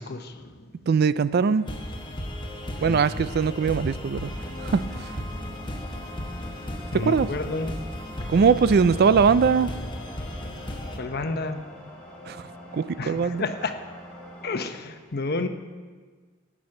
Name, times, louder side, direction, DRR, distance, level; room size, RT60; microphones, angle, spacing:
voice 1, 0.0-0.7 2.7-3.1 6.9-7.7 11.0-11.6 13.0-13.7 14.4-15.5, left 3 dB, 55° left, 7 dB, 0.9 m, -31 dB
voice 2, 0.9-1.7 2.8-4.3 4.6-5.1 6.9-7.3 8.3-9.7 12.3-12.4 12.7-13.4, right 5 dB, 55° right, 16 dB, 0.4 m, -21 dB
sound 1, 1.5-14.7, equal, 5° left, 2.8 m, -46 dB
sound 2, 1.7-11.0, left 1 dB, 25° left, 1.1 m, -34 dB
18.0 x 6.2 x 6.5 m, 1.5 s
head